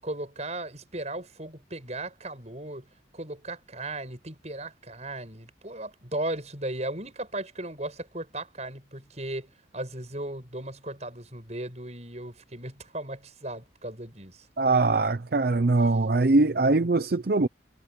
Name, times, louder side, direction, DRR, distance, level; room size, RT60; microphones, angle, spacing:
voice 1, 0.0-2.9 3.1-14.5, right 1 dB, 35° right, 7.6 m, -36 dB
voice 2, 14.6-17.5, right 3 dB, 55° right, 0.6 m, -22 dB
head